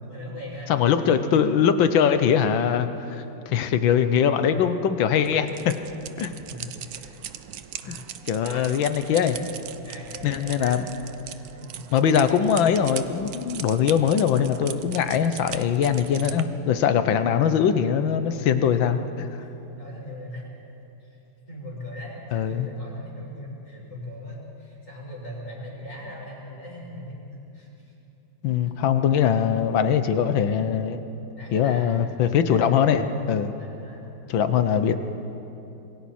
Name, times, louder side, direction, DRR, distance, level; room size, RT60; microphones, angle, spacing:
voice 1, 0.0-1.4 6.5-7.2 7.8-8.1 8.5-8.8 9.8-11.0 11.2-11.9 17.2-17.4 18.5-19.0 19.7-20.5 21.0-21.1 21.5-27.9 31.3-31.9 32.5-32.6 33.6-34.1, left 1 dB, 40° left, -3 dB, 5.3 m, -40 dB
voice 2, 0.7-3.2 3.5-5.7 6.2-6.4 7.9-8.0 8.3-9.4 10.2-10.8 11.9-19.3 22.3-22.7 28.4-31.0 31.5-33.5 34.3-34.9, left 8 dB, 80° left, 10 dB, 1.7 m, -22 dB
sound 1, 5.1-16.4, right 10 dB, 65° right, 1.0 m, -39 dB
26.5 x 22.5 x 4.4 m, 2.9 s
omnidirectional pair, 2.1 m